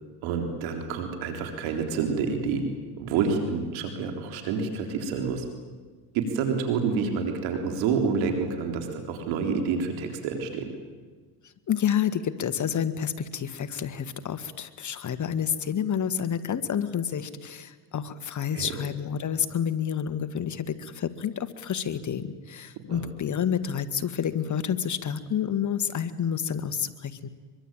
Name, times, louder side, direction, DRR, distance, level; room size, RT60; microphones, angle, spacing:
voice 1, 0.2-2.6 3.0-5.4 6.1-10.7 18.5-18.7 22.9-23.1, right 5 dB, 80° right, 4 dB, 3.8 m, -28 dB
voice 2, 11.7-27.3, left 8 dB, 40° left, 10 dB, 1.9 m, -29 dB
23.5 x 23.0 x 9.0 m, 1.4 s
supercardioid pair, 90°, 46 cm